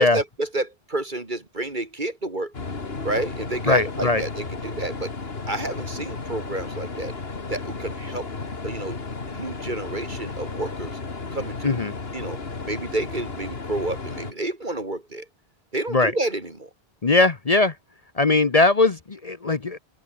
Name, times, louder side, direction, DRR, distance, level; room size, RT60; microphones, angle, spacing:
voice 1, 0.0-2.5 3.0-5.1 5.5-7.1 7.5-8.3 8.6-9.0 9.3-11.0 11.3-11.8 12.1-15.3 15.7-16.7, right 2 dB, 50° right, 3.7 m, -30 dB
sound 1, 2.5-14.3, left 4 dB, 70° left, 2.4 m, -34 dB
voice 2, 3.7-4.2 11.6-11.9 15.9-16.1 17.0-17.7 18.2-19.8, left 3 dB, 40° left, 1.1 m, -20 dB
open air
omnidirectional pair, 1.0 m